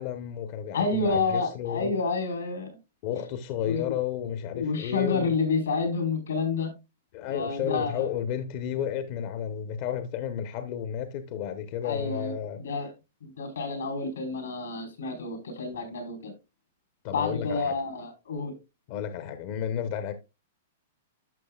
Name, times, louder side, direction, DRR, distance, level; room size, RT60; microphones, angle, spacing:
voice 1, 0.0-1.9 3.0-5.3 7.1-12.6 17.0-17.7 18.9-20.2, left 9 dB, 50° left, 0.8 m, -32 dB
voice 2, 0.7-2.8 3.6-3.9 4.5-6.7 7.3-8.1 11.8-12.9 13.2-16.3 17.1-18.5, left 4 dB, 90° left, 4.6 m, -29 dB
12.0 x 6.4 x 2.4 m
hypercardioid pair, 130°, 0 cm